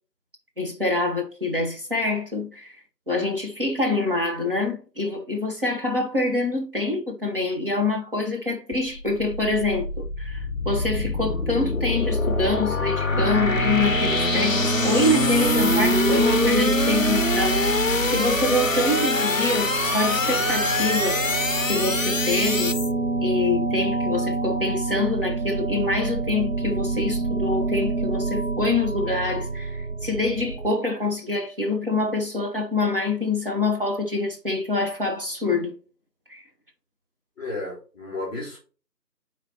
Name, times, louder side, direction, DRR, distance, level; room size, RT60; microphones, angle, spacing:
voice 1, 0.6-2.8 3.1-21.2 21.7-22.8 23.2-35.7 36.3-36.4, left 2 dB, 35° right, 1.3 m, -26 dB
sound 1, 8.7-22.9, left 3 dB, 55° left, 0.6 m, -25 dB
sound 2, 13.1-30.7, right 3 dB, 50° right, 1.4 m, -26 dB
voice 2, 37.4-38.6, left 2 dB, 10° right, 2.9 m, -33 dB
7.6 x 4.9 x 2.9 m
figure-of-eight pair, 170°, 50 cm